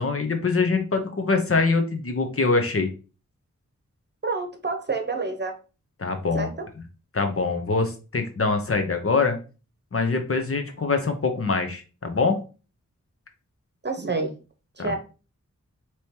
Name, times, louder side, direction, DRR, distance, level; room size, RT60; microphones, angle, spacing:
voice 1, 0.0-2.9 6.0-6.5 7.1-9.4 9.9-12.4 14.8-15.0, left 4 dB, 50° left, 6 dB, 0.9 m, -24 dB
voice 2, 4.2-5.5 6.3-6.5 13.8-14.3 14.8-15.0, right 3 dB, 35° right, 5 dB, 1.0 m, -28 dB
5.0 x 3.1 x 2.9 m, 0.34 s
wide cardioid pair, 60°, 30 cm